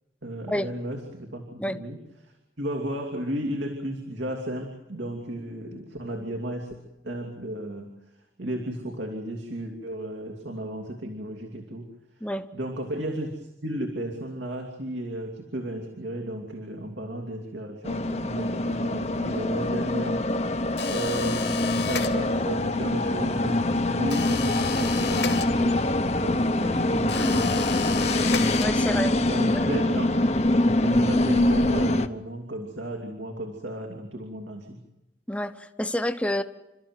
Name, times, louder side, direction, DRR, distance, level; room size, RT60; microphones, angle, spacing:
voice 1, 0.2-2.0 2.2-6.7 7.0-7.9 8.4-11.9 12.2-20.6 20.9-25.8 26.0-28.1 29.3-30.1 30.8-34.8, right 1 dB, 85° right, 2 dB, 2.8 m, -34 dB
sound 1, 17.8-32.1, left 1 dB, 35° left, 0.9 m, -24 dB
sound 2, 20.8-22.6 24.1-26.0 27.1-29.1, left 7 dB, 75° left, 2.6 m, -34 dB
voice 2, 28.6-29.3 29.5-29.7 35.3-36.4, equal, 5° left, 9 dB, 0.9 m, -28 dB
29.0 x 14.0 x 9.4 m, 0.97 s
head